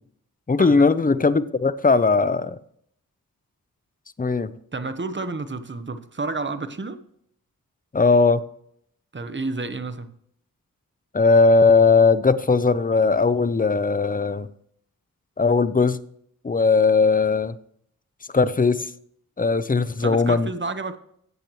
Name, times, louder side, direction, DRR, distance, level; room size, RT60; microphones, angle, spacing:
voice 1, 0.5-2.6 4.2-4.5 7.9-8.4 11.1-14.5 15.4-16.0 16.4-17.6 18.3-18.9 19.4-20.5, left 4 dB, 25° left, 0.6 m, -18 dB
voice 2, 4.7-7.0 9.1-10.1 20.0-21.0, right 3 dB, 35° right, 1.0 m, -30 dB
13.5 x 8.5 x 3.1 m
cardioid pair, 50°, 35 cm